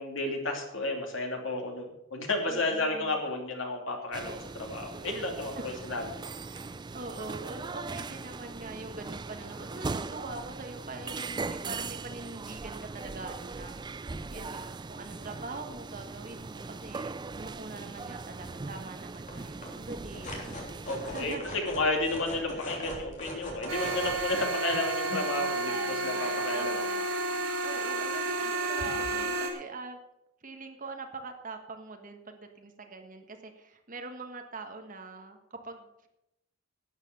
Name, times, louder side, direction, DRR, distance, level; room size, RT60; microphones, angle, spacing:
voice 1, 0.0-6.0 20.8-21.3 21.7-26.9, left 2 dB, 65° left, 2 dB, 2.9 m, -32 dB
voice 2, 2.5-3.2 6.5-20.5 21.0-21.4 25.7-30.0 30.4-36.1, right 3 dB, 40° right, 5 dB, 1.5 m, -43 dB
sound 1, 4.1-21.4, right 3 dB, 20° right, 0.4 m, -40 dB
sound 2, 18.1-18.2 18.6-18.8 19.1-24.4, left 1 dB, 35° left, 3.3 m, -41 dB
sound 3, 23.7-29.5, right 2 dB, 85° right, 3.6 m, -31 dB
12.0 x 9.3 x 6.7 m, 0.87 s
head